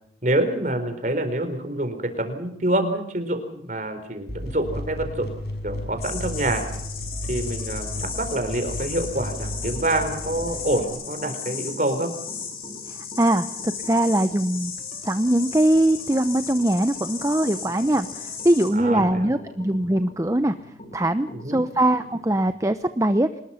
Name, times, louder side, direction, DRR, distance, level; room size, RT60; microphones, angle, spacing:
voice 1, 0.2-5.4 5.6-6.6 7.3-12.1 18.7-19.3 21.3-21.6, right 1 dB, 45° right, 8 dB, 4.4 m, -26 dB
sound 1, 4.3-10.9, equal, 75° left, 5.8 m, -33 dB
sound 2, 6.0-18.7, left 6 dB, 55° left, 7.6 m, -36 dB
sound 3, 7.1-22.5, left 1 dB, 40° left, 2.9 m, -45 dB
voice 2, 12.9-14.7 15.0-20.5 20.9-23.3, right 1 dB, 20° right, 10 dB, 0.8 m, -22 dB
25.5 x 20.5 x 5.8 m, 0.77 s
head